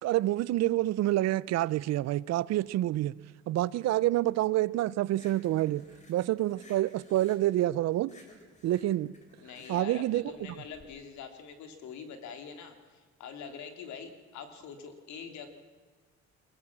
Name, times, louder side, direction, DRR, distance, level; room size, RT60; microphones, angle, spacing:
voice 1, 0.0-3.1 3.5-5.8 6.1-8.1 8.6-9.1 9.7-10.2, right 15 dB, 60° right, 0.5 m, -27 dB
sound 1, 5.1-10.8, left 1 dB, 25° left, 3.9 m, -56 dB
voice 2, 9.4-15.5, left 6 dB, 75° left, 2.8 m, -44 dB
22.5 x 19.0 x 7.4 m
cardioid pair, 135°, 29 cm